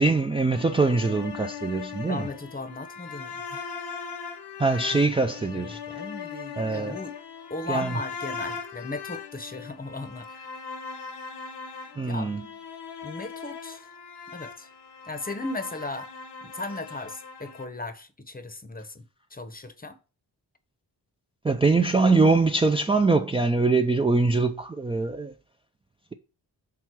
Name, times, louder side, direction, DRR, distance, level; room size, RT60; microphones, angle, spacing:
voice 1, 0.0-2.3 4.6-5.8 6.6-7.0 7.7-8.0 12.0-12.4 21.4-25.3, right 3 dB, 15° right, 0.4 m, -23 dB
sound 1, 0.5-17.7, left 6 dB, 80° left, 0.9 m, -39 dB
voice 2, 2.1-3.7 5.5-7.1 7.5-10.5 12.1-12.3 13.0-13.9 14.3-14.7 15.1-16.1 16.4-19.0 19.3-20.0, left 2 dB, 20° left, 0.8 m, -37 dB
6.0 x 3.6 x 4.7 m
cardioid pair, 70°, 41 cm